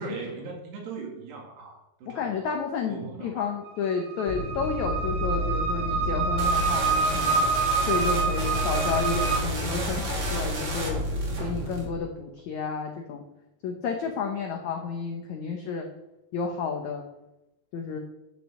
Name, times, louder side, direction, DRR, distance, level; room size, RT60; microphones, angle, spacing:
voice 1, 0.0-2.5 2.9-3.6, right 4 dB, 80° right, 1 dB, 4.2 m, -39 dB
voice 2, 2.1-7.4 7.8-11.0 11.4-13.2 13.6-15.9 16.3-17.0 17.7-18.0, left 5 dB, 80° left, 3 dB, 1.6 m, -31 dB
sound 1, 3.6-9.4, right 5 dB, 60° right, 3.8 m, -27 dB
sound 2, 4.3-11.9, left 1 dB, 50° left, 3.1 m, -31 dB
sound 3, 6.4-11.8, right 3 dB, 45° right, 1.7 m, -34 dB
10.5 x 6.1 x 7.4 m, 0.93 s
omnidirectional pair, 4.7 m